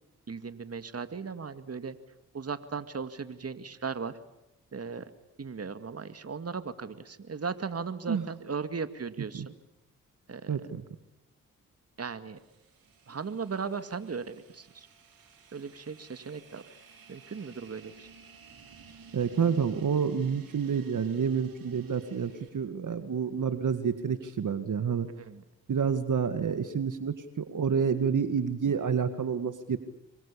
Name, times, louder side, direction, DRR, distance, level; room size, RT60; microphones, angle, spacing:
voice 1, 0.3-2.0 2.3-4.1 4.7-5.1 5.4-9.5 10.3-10.6 12.0-12.4 13.1-14.9 15.5-16.6 17.1-18.1 25.2-25.4, right 5 dB, 45° right, 11 dB, 2.1 m, -37 dB
voice 2, 10.5-10.9 19.1-25.1 25.7-29.8, right 6 dB, 60° right, 10 dB, 1.9 m, -29 dB
sound 1, 12.4-22.5, right 5 dB, 75° right, 7.0 m, -54 dB
27.0 x 23.5 x 8.6 m, 0.88 s
supercardioid pair, 40°, 35 cm